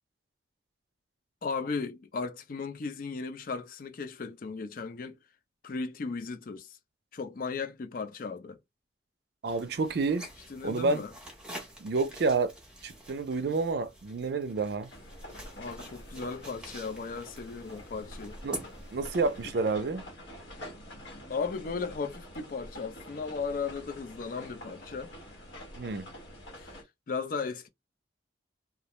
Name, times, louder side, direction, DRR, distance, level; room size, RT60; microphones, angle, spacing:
voice 1, 1.4-5.2 5.6-6.8 7.1-8.6 10.5-11.1 15.6-18.4 21.3-25.1 26.6-27.7, left 4 dB, 45° left, 0.4 m, -36 dB
sound 1, 9.4-19.5, right 1 dB, 5° right, 0.7 m, -47 dB
voice 2, 9.4-10.3 10.6-11.0 11.8-12.5 12.8-14.9 18.4-18.6 18.9-20.1 25.8-26.1, right 3 dB, 55° right, 0.4 m, -29 dB
sound 2, 14.9-26.8, equal, 80° left, 1.1 m, -47 dB
2.4 x 2.0 x 2.9 m
head